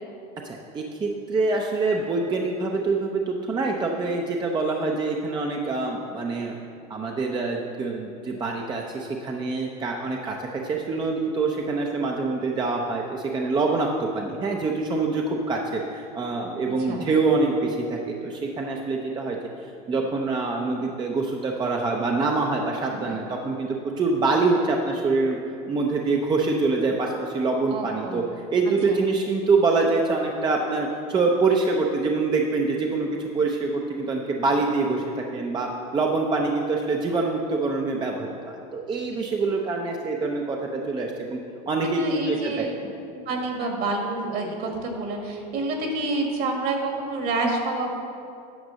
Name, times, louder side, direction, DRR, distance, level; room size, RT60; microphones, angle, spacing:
voice 1, 0.4-6.5 6.9-19.4 19.9-25.4 25.7-28.2 28.5-35.0 35.3-41.4 41.7-42.6, right 3 dB, 25° right, 1 dB, 0.6 m, -25 dB
voice 2, 22.9-23.2 27.7-28.2 28.9-29.0 41.8-42.7 43.3-47.9, right 3 dB, 55° right, 2 dB, 1.8 m, -28 dB
9.2 x 5.2 x 6.3 m, 2.5 s
supercardioid pair, 130°, 19 cm